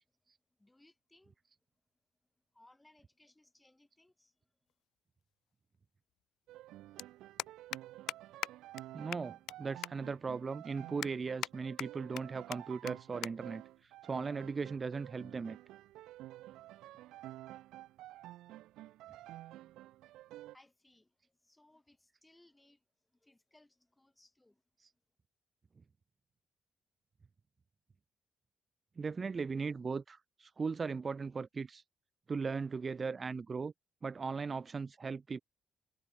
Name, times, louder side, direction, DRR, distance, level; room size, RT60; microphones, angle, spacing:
voice 1, 0.6-1.4 2.5-4.7 20.3-24.6, left 1 dB, 10° left, 2.9 m, -66 dB
sound 1, 4.7-4.8 6.2-6.3 6.5-6.7 7.0-7.1 7.4-7.8 8.1-8.2 8.4-8.5 8.8-8.9 9.1-9.6 9.8-9.9 10.4-10.5 11.0-11.5 11.8-12.2 12.5-12.6 12.9-13.0 13.2-13.3 13.6-13.9 14.7-14.9, left 14 dB, 85° left, 0.3 m, -40 dB
sound 2, 6.5-20.6, right 15 dB, 90° right, 0.3 m, -51 dB
voice 2, 8.9-15.6 29.0-31.8 32.3-33.7 34.0-35.4, right 5 dB, 35° right, 0.5 m, -38 dB
cardioid pair, 90°, 0 cm